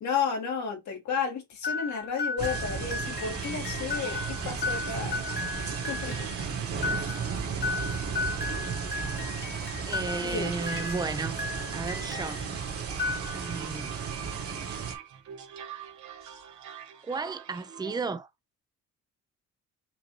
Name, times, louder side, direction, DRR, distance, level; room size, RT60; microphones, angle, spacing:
voice 1, 0.0-5.2 5.9-6.2 10.2-10.5, left 6 dB, 70° left, 2.1 m, -32 dB
sound 1, 1.6-12.5 12.9-13.7, left 4 dB, 35° left, 1.4 m, -35 dB
sound 2, 2.4-14.9, right 6 dB, 50° right, 1.6 m, -34 dB
sound 3, 3.0-18.0, right 8 dB, 70° right, 1.1 m, -45 dB
voice 2, 7.4-8.0 9.9-11.4 11.7-12.4 13.3-13.9 17.0-18.3, right 4 dB, 15° right, 0.6 m, -34 dB
5.9 x 2.6 x 3.2 m
cardioid pair, 90°, 30 cm